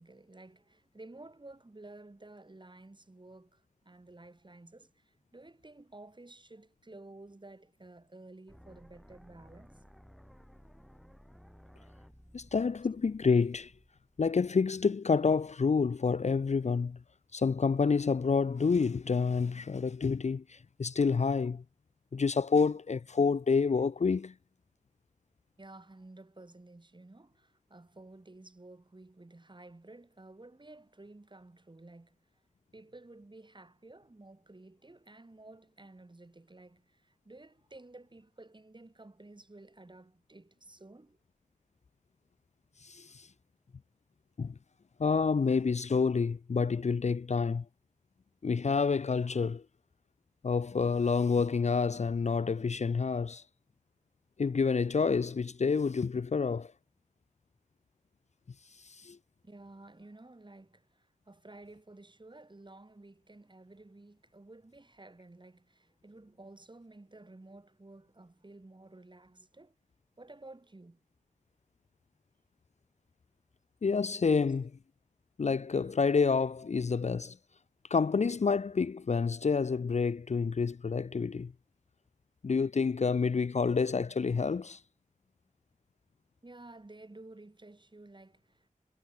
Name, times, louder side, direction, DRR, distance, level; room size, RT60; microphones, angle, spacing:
voice 1, 0.0-9.8 25.6-32.4 32.7-41.2 59.4-69.8 70.2-71.0 86.4-88.7, right 2 dB, 35° right, 6.3 m, -53 dB
sound 1, 8.5-14.5, equal, ahead, 4.8 m, -57 dB
voice 2, 12.3-13.7 14.2-17.0 17.3-21.6 22.1-24.3 42.8-43.3 44.4-44.5 45.0-47.6 48.4-49.6 50.4-53.4 54.4-56.7 58.8-59.2 73.8-74.7 75.4-77.4 77.9-81.5 82.4-84.8, left 5 dB, 55° left, 0.5 m, -28 dB
wide cardioid pair, 75°, 14 cm